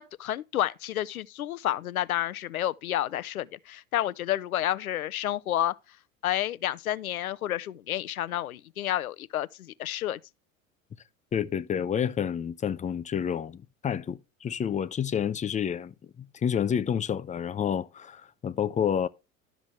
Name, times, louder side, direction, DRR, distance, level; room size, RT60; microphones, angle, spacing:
voice 1, 0.0-5.7 6.2-10.2, left 12 dB, 85° left, 0.7 m, -30 dB
voice 2, 11.3-15.9 16.4-19.1, left 8 dB, 20° left, 0.6 m, -29 dB
12.5 x 6.1 x 3.2 m
hypercardioid pair, 80°, 42 cm